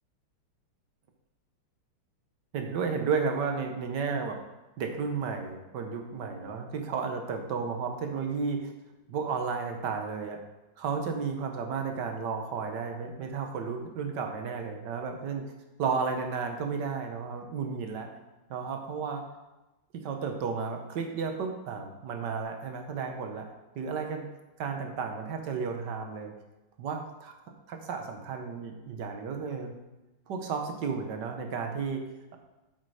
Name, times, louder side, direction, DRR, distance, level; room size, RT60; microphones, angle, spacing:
voice 1, 2.5-4.4 4.8-8.7 9.1-10.4 10.8-15.4 15.8-18.1 18.5-19.2 19.9-23.5 23.7-24.3 24.6-26.3 26.8-27.3 27.7-29.7 30.3-32.0, right 5 dB, 60° right, 4 dB, 1.5 m, -33 dB
8.3 x 6.5 x 4.9 m, 1.0 s
omnidirectional pair, 2.4 m